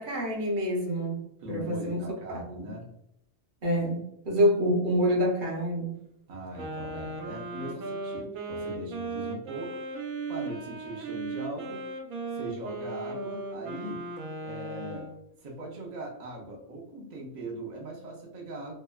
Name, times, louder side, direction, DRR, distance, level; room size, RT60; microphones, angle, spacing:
voice 1, 0.0-2.7 3.6-6.0, equal, 45° right, -2 dB, 0.7 m, -27 dB
voice 2, 1.4-2.9 6.3-9.8 10.3-11.9 12.3-14.0 14.4-15.1 15.4-18.7, right 1 dB, 65° right, -1 dB, 0.4 m, -40 dB
Wind instrument woodwind instrument, 6.5-15.2, right 3 dB, 90° right, 1.1 m, -37 dB
2.7 x 2.1 x 2.2 m, 0.81 s
omnidirectional pair, 1.4 m